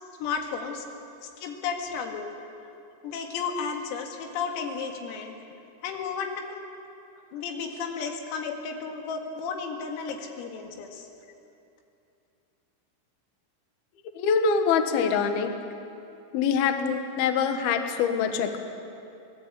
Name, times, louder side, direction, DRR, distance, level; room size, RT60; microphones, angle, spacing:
voice 1, 0.2-0.9 1.4-2.3 3.0-5.4 5.8-6.6 7.3-11.1, left 5 dB, 90° left, 3 dB, 4.7 m, -33 dB
voice 2, 14.2-15.5 16.3-18.6, left 6 dB, 65° left, 7 dB, 2.6 m, -24 dB
25.5 x 19.0 x 8.3 m, 2.7 s
omnidirectional pair, 5.9 m